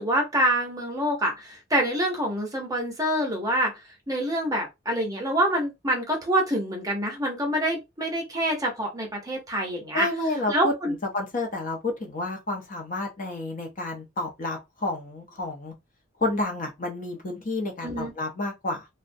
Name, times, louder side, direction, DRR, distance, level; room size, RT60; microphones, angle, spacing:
voice 1, 0.0-10.1 10.5-10.9 17.8-18.1, right 1 dB, 20° right, 0.7 m, -26 dB
voice 2, 9.9-15.7 16.2-18.9, left 2 dB, 40° left, 0.6 m, -30 dB
2.4 x 2.1 x 2.5 m
head